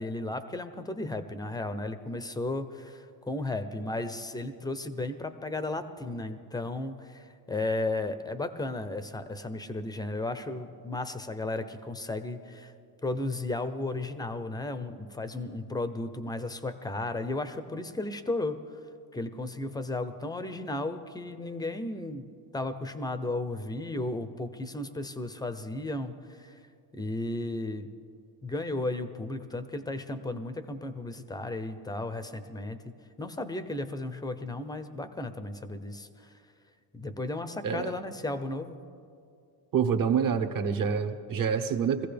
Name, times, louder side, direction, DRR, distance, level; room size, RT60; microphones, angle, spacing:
voice 1, 0.0-12.7 13.0-18.6 19.1-26.5 26.9-27.9 28.4-36.3 36.9-38.8, left 2 dB, 10° left, 11 dB, 0.6 m, -34 dB
voice 2, 39.7-42.1, right 7 dB, 40° right, 9 dB, 1.1 m, -27 dB
22.0 x 15.0 x 3.4 m, 2.4 s
supercardioid pair, 110°, 49 cm